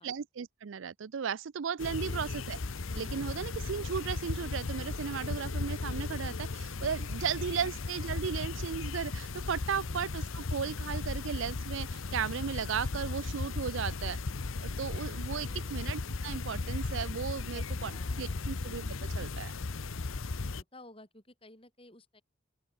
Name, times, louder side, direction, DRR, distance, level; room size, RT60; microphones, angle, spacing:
voice 1, 0.0-2.6 3.0-14.2 14.6-17.9 18.2-19.5, right 6 dB, 70° right, 0.5 m, -35 dB
sound 1, 1.8-20.6, left 3 dB, 80° left, 0.9 m, -36 dB
voice 2, 7.4-7.7 9.8-10.0 15.4-15.8 17.4-18.5 20.5-22.2, left 1 dB, 25° left, 6.8 m, -55 dB
open air
head